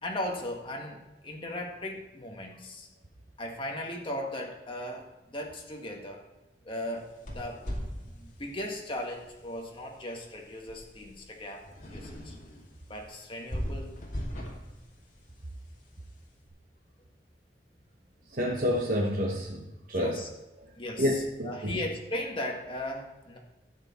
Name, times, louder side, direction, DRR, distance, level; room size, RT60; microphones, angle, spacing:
voice 1, 0.0-2.9 3.4-6.2 6.6-7.7 8.0-11.6 11.9-12.4 12.9-13.9 19.9-20.3 20.8-23.4, left 1 dB, 30° left, 0 dB, 1.7 m, -37 dB
sound 1, 6.9-16.3, equal, 45° left, 2.4 m, -41 dB
voice 2, 18.3-20.2 20.6-20.7 21.0-21.8, equal, 50° right, -2 dB, 1.2 m, -29 dB
12.5 x 8.3 x 4.3 m, 1.1 s
head